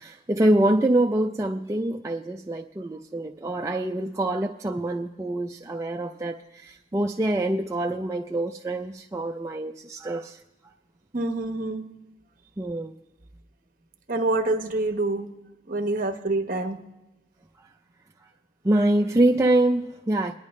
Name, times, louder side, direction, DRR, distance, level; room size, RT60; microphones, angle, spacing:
voice 1, 0.0-10.4 12.6-12.9 18.6-20.3, right 1 dB, 15° right, 0.3 m, -25 dB
voice 2, 11.1-11.8 14.1-15.3 15.7-16.8, right 2 dB, 45° right, 1.0 m, -26 dB
22.5 x 10.0 x 3.2 m
head